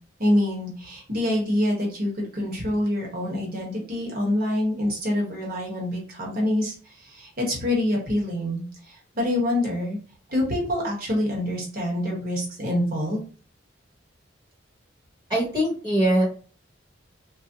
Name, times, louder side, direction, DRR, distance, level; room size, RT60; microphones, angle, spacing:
voice 1, 0.2-10.0 10.3-13.2, left 1 dB, 50° right, -2 dB, 1.1 m, -26 dB
voice 2, 15.3-16.2, right 1 dB, 25° right, -4 dB, 1.0 m, -22 dB
3.9 x 2.1 x 2.7 m, 0.39 s
head